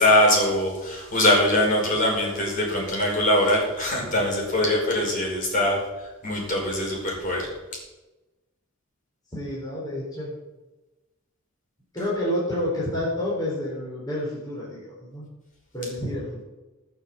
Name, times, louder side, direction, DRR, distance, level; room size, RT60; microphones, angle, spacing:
voice 1, 0.0-5.8 6.2-7.5, left 1 dB, 40° left, -3 dB, 5.4 m, -22 dB
voice 2, 9.3-10.3 11.9-15.3 15.7-16.4, left 1 dB, 20° left, -7 dB, 4.1 m, -29 dB
18.0 x 6.8 x 7.6 m, 1.1 s
head